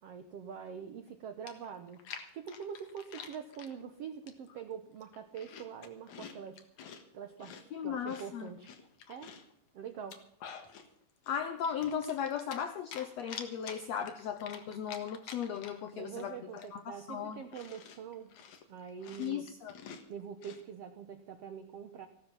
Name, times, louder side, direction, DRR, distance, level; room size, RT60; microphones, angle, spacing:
voice 1, 0.0-2.0 2.3-6.6 7.1-8.7 9.1-9.3 9.7-10.2 15.9-18.3 18.7-19.5 20.1-22.1, right 7 dB, 80° right, 7 dB, 1.4 m, -44 dB
Chewing mastication, 1.1-1.2 1.5-3.7 4.3-4.6 5.0-7.0 7.4-9.5 9.9-10.9 11.2-12.7 12.9-15.9 16.2-16.3 16.6-20.6, left 7 dB, 60° left, 2.6 m, -48 dB
voice 2, 7.7-8.5 11.3-16.4 16.7-17.4 19.2-19.7, left 8 dB, 85° left, 8 dB, 1.5 m, -36 dB
15.5 x 12.5 x 5.7 m, 0.69 s
omnidirectional pair, 4.1 m